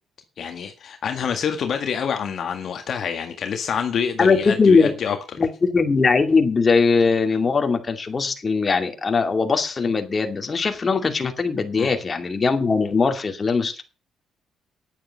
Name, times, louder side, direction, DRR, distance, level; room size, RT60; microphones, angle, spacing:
voice 1, 0.4-5.2 11.8-11.9, left 7 dB, 55° left, 6 dB, 1.7 m, -27 dB
voice 2, 4.2-4.9 5.4-13.8, left 4 dB, 30° left, 5 dB, 2.5 m, -20 dB
10.0 x 9.0 x 6.7 m, 0.33 s
cardioid pair, 105°, 0 cm